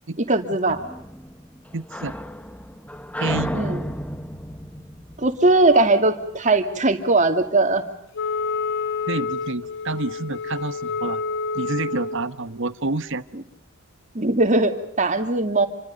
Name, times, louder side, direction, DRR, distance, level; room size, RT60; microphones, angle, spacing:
voice 1, 0.3-0.8 3.5-3.8 5.2-7.8 13.3-13.4 14.1-15.7, right 2 dB, 35° right, 7 dB, 2.5 m, -19 dB
sound 1, 0.7-6.2, equal, 5° left, 0.9 m, -33 dB
voice 2, 1.7-2.2 3.2-3.6 9.1-11.2 11.5-13.2, right 3 dB, 60° right, 13 dB, 1.2 m, -28 dB
Wind instrument woodwind instrument, 8.1-12.3, left 4 dB, 55° left, 1.6 m, -28 dB
28.5 x 25.5 x 5.3 m, 0.77 s
head